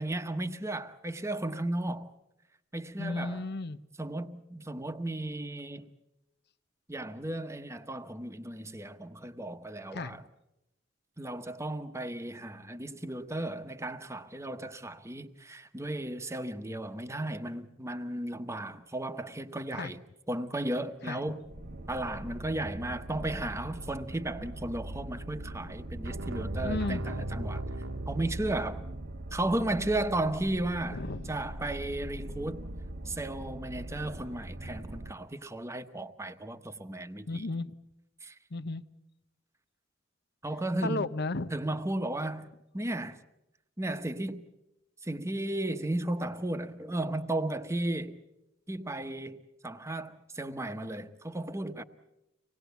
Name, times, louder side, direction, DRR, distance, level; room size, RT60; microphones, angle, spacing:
voice 1, 0.0-2.1 2.7-3.4 4.0-5.9 6.9-10.2 11.2-20.0 20.3-21.5 21.9-27.6 28.1-28.8 29.3-32.7 33.0-37.5 38.2-38.4 40.4-41.1 41.5-42.5 42.7-43.2 43.8-44.4 45.0-48.2 48.7-51.8, right 1 dB, 15° right, 1.1 m, -35 dB
voice 2, 3.0-3.8 9.9-10.2 19.7-19.9 21.1-21.2 26.6-27.0 30.9-31.3 37.3-37.7 38.5-38.8 40.8-41.5, left 2 dB, 55° left, 0.8 m, -34 dB
sound 1, 21.4-35.1, right 1 dB, 55° right, 1.0 m, -42 dB
sound 2, 26.0-29.2, right 1 dB, 75° right, 1.4 m, -36 dB
25.5 x 19.5 x 8.1 m
head